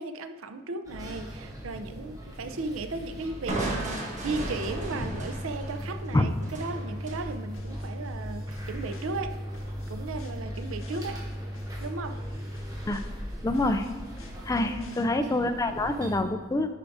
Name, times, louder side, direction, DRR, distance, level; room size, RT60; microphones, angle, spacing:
voice 1, 0.0-9.4 9.9-11.2 11.8-12.2 14.6-15.1, right 3 dB, 80° right, 9 dB, 0.5 m, -36 dB
sound 1, 0.8-16.2, equal, 20° right, 1.0 m, -38 dB
Crushing, 3.5-7.3, right 1 dB, 40° right, 1.3 m, -35 dB
sound 2, 7.0-15.0, left 1 dB, 75° left, 0.8 m, -44 dB
voice 2, 13.4-13.9 14.5-16.8, left 2 dB, 15° left, 8 dB, 0.3 m, -26 dB
10.5 x 4.7 x 2.6 m, 1.5 s
head